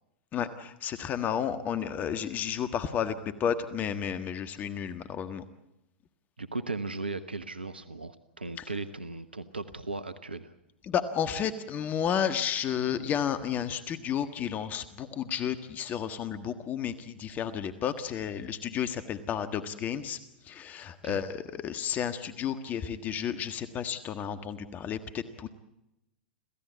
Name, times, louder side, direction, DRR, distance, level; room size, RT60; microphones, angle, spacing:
voice 1, 0.3-3.1 3.4-5.4 8.6-8.7 10.8-20.2 20.4-25.5, left 8 dB, 30° left, 10 dB, 1.5 m, -32 dB
voice 2, 6.4-10.5 21.0-21.2, right 3 dB, 90° right, 12 dB, 1.0 m, -37 dB
27.0 x 16.0 x 8.3 m, 0.91 s
figure-of-eight pair, 95°, 5 cm